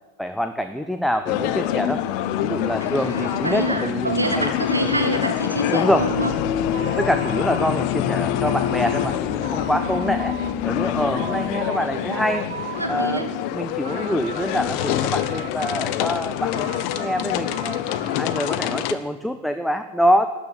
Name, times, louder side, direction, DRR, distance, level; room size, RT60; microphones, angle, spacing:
voice 1, 0.2-2.0 2.4-4.5 5.7-6.1 7.0-10.3 10.6-12.5 12.9-13.3 13.5-17.8 18.2-20.3, equal, ahead, 8 dB, 0.5 m, -25 dB
sound 1, 1.3-18.9, left 11 dB, 45° left, 0.7 m, -25 dB
voice 2, 2.8-6.4 11.8-13.3, right 1 dB, 85° right, 6 dB, 1.4 m, -27 dB
sound 2, 5.9-11.5, right 1 dB, 35° right, 3.8 m, -42 dB
sound 3, 6.7-9.2 9.4-10.5 10.9-11.8 12.1-13.2 13.5-14.5 14.8-16.1 16.5-18.6, right 7 dB, 65° right, 0.9 m, -38 dB
13.0 x 6.3 x 8.9 m, 1.2 s
figure-of-eight pair, 90°, 0 cm